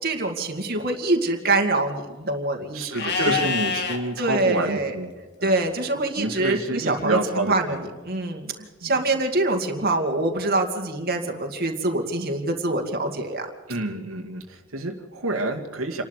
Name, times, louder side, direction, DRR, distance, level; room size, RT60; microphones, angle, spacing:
voice 1, 0.0-3.4 4.2-5.0 5.4-13.5, right 2 dB, 50° right, 3 dB, 2.3 m, -25 dB
voice 2, 2.7-5.1 5.4-5.5 6.2-7.8 8.1-8.2 8.8-8.9 13.7-16.0, right 2 dB, 80° right, 3 dB, 2.1 m, -28 dB
Livestock farm animals working animals, 2.9-4.0 6.8-7.8, left 5 dB, 55° left, 2.3 m, -28 dB
28.0 x 12.0 x 8.2 m, 1.3 s
head